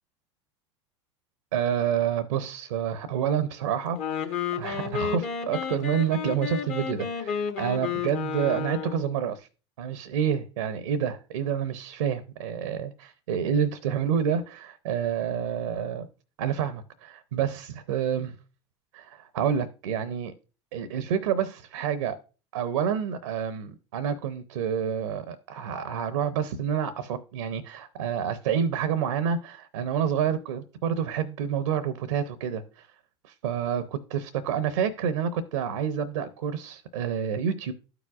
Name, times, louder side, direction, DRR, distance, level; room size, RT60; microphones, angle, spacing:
voice 1, 1.5-9.5 9.8-16.1 16.4-18.4 18.9-20.3 20.7-22.2 22.5-32.9 33.2-37.7, right 8 dB, 80° right, 0.6 m, -28 dB
Wind instrument woodwind instrument, 3.9-9.1, left 6 dB, 55° left, 1.3 m, -31 dB
12.5 x 4.9 x 2.4 m
hypercardioid pair, 80°, 15 cm